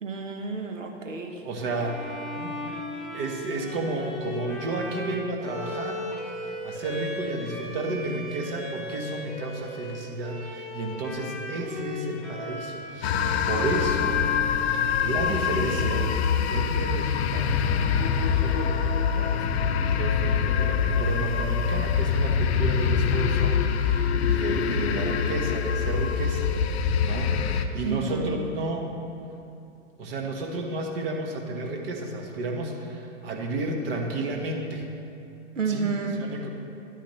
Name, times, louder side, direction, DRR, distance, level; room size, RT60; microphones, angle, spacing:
voice 1, 0.0-1.4 27.8-28.4 35.6-36.3, right 4 dB, 85° right, 4 dB, 1.0 m, -30 dB
voice 2, 1.4-2.6 3.1-6.0 6.4-14.3 14.7-16.1 16.5-26.5 27.0-28.9 30.0-34.9 35.7-35.9 36.2-36.5, right 2 dB, 50° right, 2 dB, 1.4 m, -32 dB
Bowed string instrument, 1.8-15.2, left 1 dB, ahead, 1.1 m, -37 dB
sound 1, 13.0-27.7, left 7 dB, 55° left, 0.6 m, -24 dB
10.5 x 9.2 x 3.2 m, 2.7 s
figure-of-eight pair, 105°, 37 cm